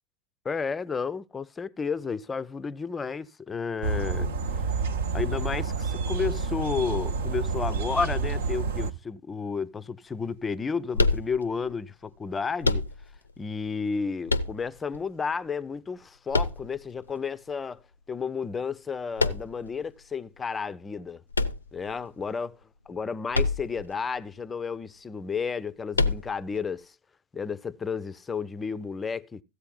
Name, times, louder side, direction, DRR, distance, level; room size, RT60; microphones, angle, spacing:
voice 1, 0.4-4.7 5.1-12.9 13.4-21.2 21.7-22.6 22.9-26.9 27.3-29.4, left 5 dB, 15° left, 0.5 m, -32 dB
sound 1, 3.8-8.9, right 4 dB, 60° right, 0.8 m, -29 dB
sound 2, 10.9-11.7 12.6-13.3 14.3-15.0 16.3-17.1 19.2-19.7 21.3-22.2 23.3-23.9 24.2-24.3 25.9-26.6, left 3 dB, 80° left, 0.5 m, -26 dB
15.0 x 8.1 x 3.8 m
figure-of-eight pair, 90°, 0 cm